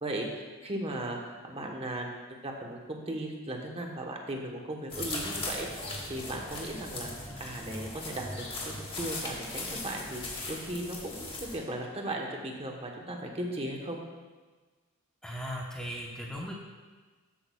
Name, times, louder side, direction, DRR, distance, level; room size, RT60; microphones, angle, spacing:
voice 1, 0.0-5.7 6.1-7.1 7.4-14.0, right 1 dB, 25° right, 1 dB, 1.1 m, -37 dB
sound 1, 4.9-11.6, left 2 dB, 25° left, 1.5 m, -38 dB
voice 2, 15.2-16.5, equal, 5° left, -2 dB, 0.9 m, -37 dB
13.0 x 8.6 x 2.3 m, 1.3 s
head